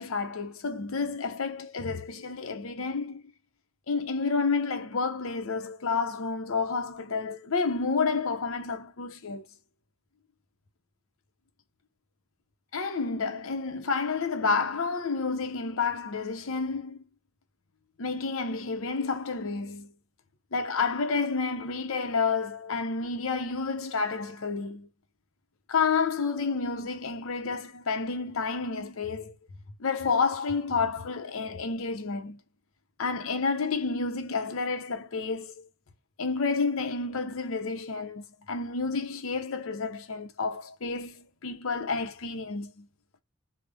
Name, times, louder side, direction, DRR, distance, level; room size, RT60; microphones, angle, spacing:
voice 1, 0.0-3.2 3.9-9.5 12.7-17.0 18.0-19.9 20.5-24.9 25.7-29.3 29.8-32.4 33.0-35.7 36.2-42.9, left 4 dB, 70° left, 0.7 m, -30 dB
3.1 x 2.1 x 3.4 m
head